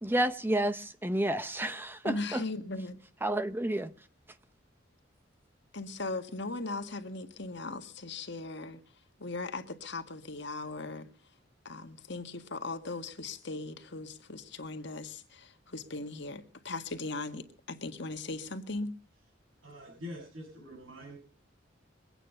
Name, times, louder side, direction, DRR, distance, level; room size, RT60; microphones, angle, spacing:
voice 1, 0.0-2.4 3.2-3.9, right 1 dB, 10° right, 0.6 m, -30 dB
voice 2, 2.0-3.0 5.7-8.8 9.2-11.1 11.6-18.9, left 3 dB, 60° left, 1.7 m, -38 dB
voice 3, 19.6-21.2, left 1 dB, 85° right, 7.4 m, -45 dB
23.5 x 9.0 x 5.6 m
head